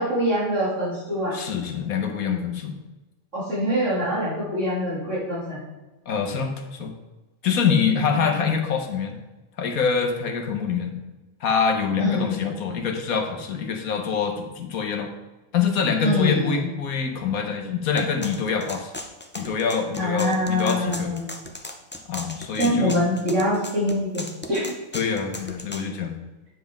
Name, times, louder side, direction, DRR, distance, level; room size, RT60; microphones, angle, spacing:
voice 1, 0.0-1.3 3.3-5.6 7.6-8.5 12.0-12.4 16.0-16.7 20.0-21.4 22.6-24.7, equal, 60° right, -8 dB, 3.0 m, -25 dB
voice 2, 1.3-2.8 6.1-6.9 7.4-9.2 9.6-11.0 11.4-15.1 15.5-18.9 19.4-21.2 22.1-23.1 24.9-26.2, left 6 dB, 85° left, 4 dB, 1.5 m, -25 dB
sound 1, 18.0-25.9, left 1 dB, 15° left, 0.3 m, -37 dB
9.3 x 7.5 x 3.5 m, 1.1 s
omnidirectional pair, 1.5 m